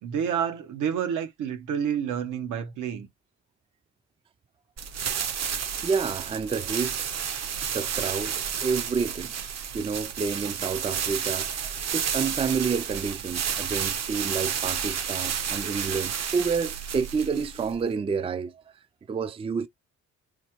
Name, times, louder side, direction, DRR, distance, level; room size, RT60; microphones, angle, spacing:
voice 1, 0.0-3.1, right 8 dB, 85° right, 1.1 m, -29 dB
sound 1, 4.8-17.9, right 8 dB, 60° right, 0.9 m, -31 dB
voice 2, 5.8-7.1 7.7-9.3 9.7-18.5 19.1-19.7, right 5 dB, 20° right, 0.4 m, -29 dB
4.2 x 2.2 x 3.0 m
cardioid pair, 90°, 30 cm